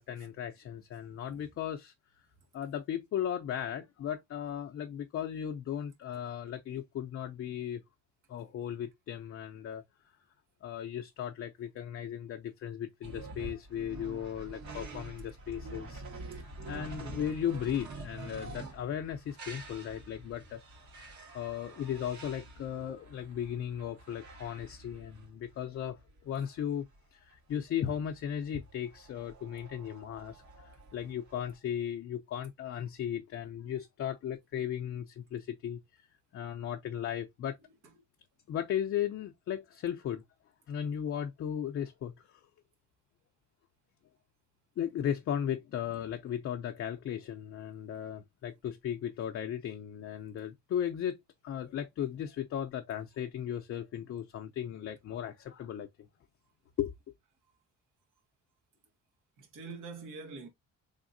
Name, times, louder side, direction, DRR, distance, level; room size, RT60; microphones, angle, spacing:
voice 1, 0.0-1.9 2.5-7.8 8.3-9.8 10.6-16.0 16.3-20.6 21.0-21.1 21.3-26.9 27.1-36.1 36.3-37.6 38.5-40.2 40.7-42.5 44.8-51.2 51.4-56.1 56.8-56.9, left 9 dB, 50° left, 0.5 m, -36 dB
voice 2, 1.0-1.4 59.4-60.5, right 4 dB, 85° right, 1.6 m, -45 dB
sound 1, 13.0-31.6, right 2 dB, 70° right, 1.8 m, -47 dB
3.9 x 3.6 x 2.5 m
cardioid pair, 120°, 30 cm